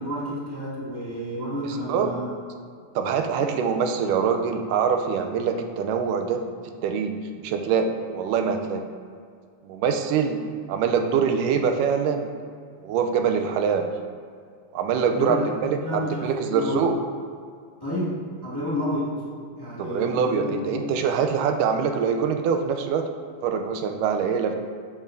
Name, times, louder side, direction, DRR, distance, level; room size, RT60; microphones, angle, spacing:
voice 1, 0.0-2.3 3.4-3.5 15.1-16.8 17.8-19.1 19.5-20.9, left 1 dB, 10° left, -9 dB, 1.3 m, -30 dB
voice 2, 3.0-6.4 6.8-7.2 7.4-8.8 9.6-10.4 10.7-12.3 12.8-13.9 14.7-17.0 19.8-23.1 23.4-24.6, right 6 dB, 90° right, 5 dB, 2.2 m, -24 dB
8.9 x 8.4 x 2.6 m, 2.2 s
omnidirectional pair, 3.7 m